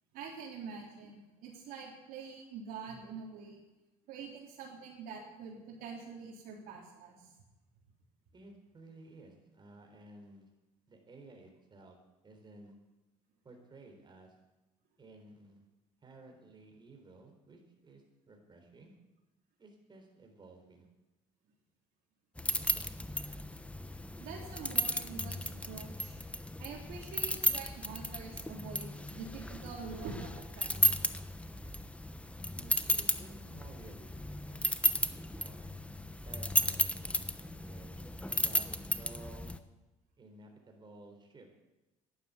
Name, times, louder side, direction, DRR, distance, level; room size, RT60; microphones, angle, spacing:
voice 1, 0.1-3.6 4.1-7.3 24.2-26.1 26.6-31.2, right 5 dB, 75° right, -1 dB, 3.4 m, -46 dB
voice 2, 8.3-10.5 10.9-12.0 12.2-12.7 13.4-14.3 15.0-15.6 16.0-18.9 19.6-20.9 32.5-35.7 36.2-38.0 38.3-39.5 40.2-41.5, right 2 dB, 30° right, 2 dB, 3.8 m, -55 dB
sound 1, 22.4-39.6, left 1 dB, 10° left, 0.9 m, -34 dB
11.5 x 11.0 x 8.3 m, 1.0 s
supercardioid pair, 90°, 15 cm